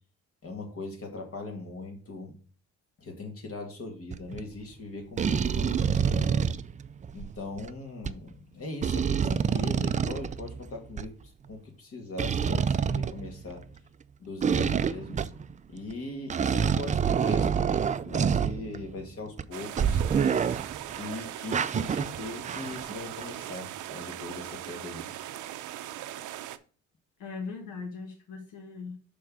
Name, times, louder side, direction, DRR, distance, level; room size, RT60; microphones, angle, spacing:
voice 1, 0.4-2.3 3.0-6.4 7.1-13.6 14.2-15.2 15.7-20.0 20.9-25.1, left 2 dB, 50° left, 2 dB, 2.1 m, -40 dB
sound 1, 4.1-4.4 5.2-7.7 8.1-8.2 8.8-11.1 12.2-13.8 14.4-15.5 15.9-16.0 16.3-19.0 19.4-19.5 19.8-21.0 21.5-23.0 23.2-23.4, right 7 dB, 25° right, 0.3 m, -27 dB
sound 2, 19.5-26.6, right 12 dB, 80° right, 0.6 m, -40 dB
voice 2, 27.2-29.1, left 4 dB, 85° left, 3 dB, 1.3 m, -39 dB
6.2 x 3.5 x 6.0 m, 0.40 s
cardioid pair, 90°, 30 cm